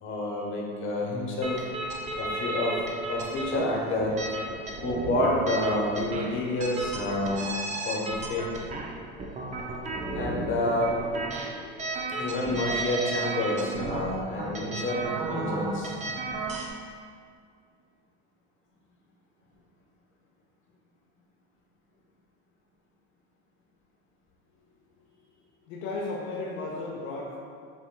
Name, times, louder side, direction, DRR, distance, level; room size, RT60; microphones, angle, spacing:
voice 1, 0.0-1.6 2.2-2.7 3.1-4.2 4.8-7.6 7.8-8.5 10.1-10.9 12.1-15.9, left 1 dB, 35° left, -2 dB, 1.1 m, -29 dB
sound 1, 1.4-16.7, right 2 dB, 20° right, 0.5 m, -34 dB
voice 2, 25.7-27.4, left 2 dB, 60° left, -4 dB, 0.8 m, -34 dB
5.9 x 3.7 x 2.2 m, 2.1 s
supercardioid pair, 100°, 33 cm